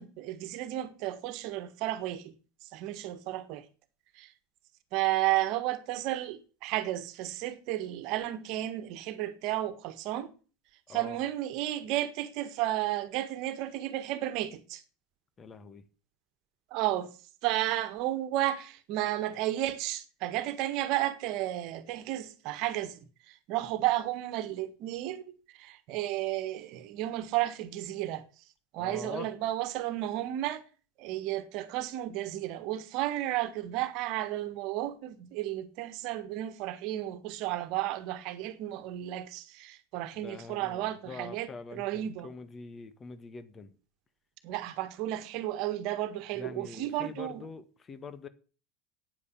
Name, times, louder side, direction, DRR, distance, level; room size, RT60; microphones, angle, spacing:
voice 1, 0.0-2.3 2.7-3.6 4.2-4.3 4.9-10.3 10.9-14.8 16.7-17.1 17.4-23.0 23.3-25.2 25.6-28.2 28.7-30.6 31.0-42.3 44.4-47.4, right 14 dB, 55° right, 1.5 m, -33 dB
voice 2, 15.4-15.8 28.8-29.3 40.2-43.7 46.3-48.3, left 4 dB, 30° left, 1.8 m, -44 dB
9.6 x 9.2 x 7.3 m
figure-of-eight pair, 75°, 0 cm